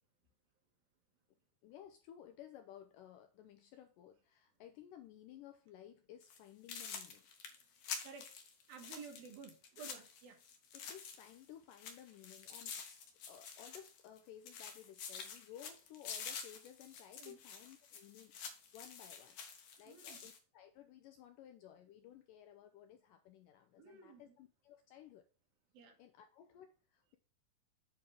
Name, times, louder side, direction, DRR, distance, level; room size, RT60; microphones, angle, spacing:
voice 1, 1.6-7.3 10.7-19.4 19.8-25.2 26.0-27.2, left 10 dB, 90° left, 1.9 m, -57 dB
sound 1, 6.2-6.4 6.7-11.4 11.7-14.2 14.5-20.4, left 6 dB, 70° left, 1.8 m, -48 dB
voice 2, 8.0-8.4 8.7-10.4 17.2-17.4 19.9-20.2 23.8-24.4 25.7-26.0, right 5 dB, 75° right, 3.2 m, -53 dB
8.7 x 4.3 x 5.0 m
omnidirectional pair, 4.4 m